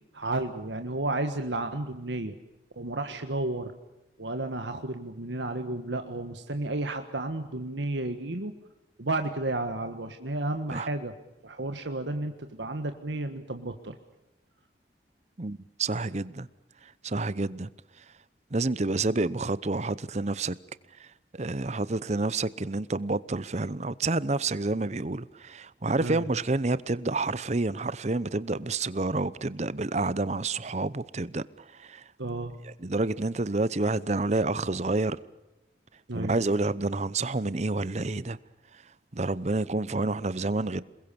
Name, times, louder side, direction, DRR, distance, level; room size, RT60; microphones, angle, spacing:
voice 1, 0.1-2.3 2.8-3.7 4.2-8.5 9.0-11.1 11.4-13.9 26.0-26.2 32.2-32.6 36.1-36.3, right 2 dB, 85° right, 1.5 m, -32 dB
voice 2, 15.4-16.5 17.0-17.7 18.5-20.6 21.0-21.1 21.3-32.0 32.6-35.2 36.1-38.4 39.1-40.8, right 2 dB, 40° right, 0.8 m, -29 dB
28.5 x 21.5 x 7.0 m
head